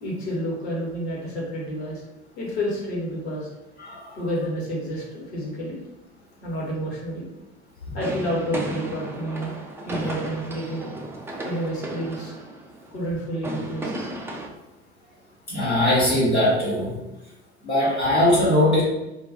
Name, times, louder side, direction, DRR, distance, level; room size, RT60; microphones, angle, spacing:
voice 1, 0.0-2.0 2.4-3.5 4.1-5.8 6.4-7.3 7.9-9.5 9.8-10.9 11.4-12.3 12.9-14.1, equal, 65° left, -4 dB, 1.2 m, -29 dB
sound 1, 8.0-14.5, right 2 dB, 10° right, 0.4 m, -34 dB
voice 2, 15.5-16.9 17.6-18.8, left 1 dB, 90° left, -9 dB, 1.2 m, -20 dB
2.4 x 2.2 x 4.0 m, 1.0 s
figure-of-eight pair, 65°, 32 cm